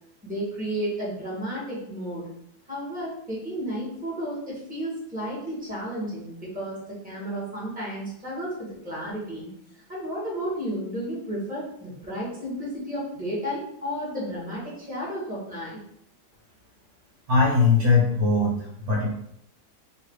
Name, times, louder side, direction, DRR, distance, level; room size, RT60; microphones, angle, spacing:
voice 1, 0.2-2.3 2.7-9.5 9.9-15.8, equal, 5° right, -6 dB, 1.5 m, -32 dB
voice 2, 17.3-19.1, left 4 dB, 60° right, -4 dB, 1.3 m, -20 dB
3.1 x 3.0 x 4.6 m, 0.73 s
omnidirectional pair, 1.8 m